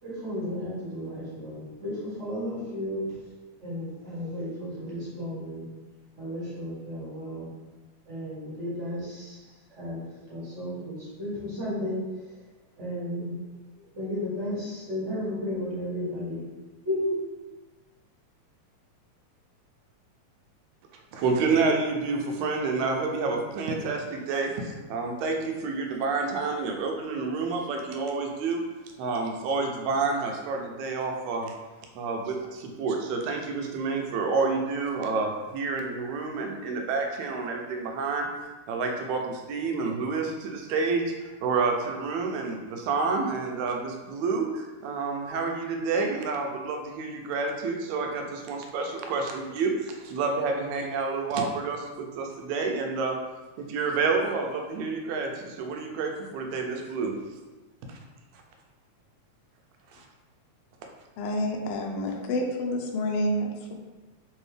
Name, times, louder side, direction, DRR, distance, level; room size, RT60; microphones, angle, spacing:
voice 1, 0.0-3.1 3.6-5.6 6.1-7.5 8.0-10.0 10.3-12.4 12.8-13.4 13.7-16.4 16.8-17.2, left 1 dB, 35° right, -8 dB, 1.2 m, -33 dB
voice 2, 21.1-28.6 29.0-31.5 32.0-38.3 38.7-53.2 53.6-57.1 57.9-58.0 59.9-60.0, right 4 dB, 80° right, 2 dB, 1.9 m, -29 dB
voice 3, 61.2-63.7, left 1 dB, 80° left, 1 dB, 1.4 m, -28 dB
4.5 x 3.1 x 3.2 m, 1.2 s
omnidirectional pair, 3.4 m